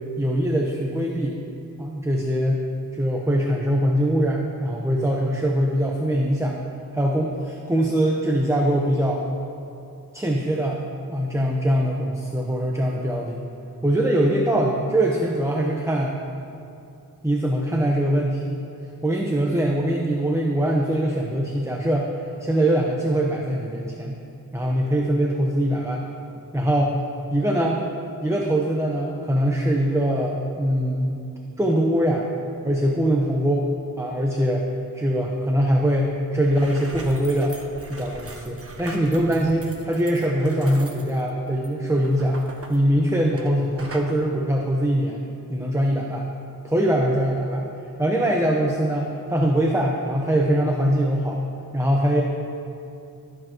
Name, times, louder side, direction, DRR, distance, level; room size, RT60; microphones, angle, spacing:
voice 1, 0.2-1.4 1.8-2.6 2.9-6.5 6.9-9.3 10.1-10.8 11.1-13.5 13.8-16.1 17.2-18.6 19.0-22.1 22.4-24.2 24.5-26.0 26.5-27.0 27.3-27.8 28.2-31.2 31.6-32.3 32.6-33.7 34.0-34.6 34.9-37.5 37.9-42.4 42.7-45.2 45.5-46.3 46.6-47.6 48.0-51.4 51.7-52.2, right 1 dB, 10° right, -1 dB, 1.0 m, -22 dB
sound 1, 36.4-43.5 43.8-44.1, right 2 dB, 40° right, 1.3 m, -41 dB
19.0 x 8.0 x 3.1 m, 2.6 s
cardioid pair, 45°, 35 cm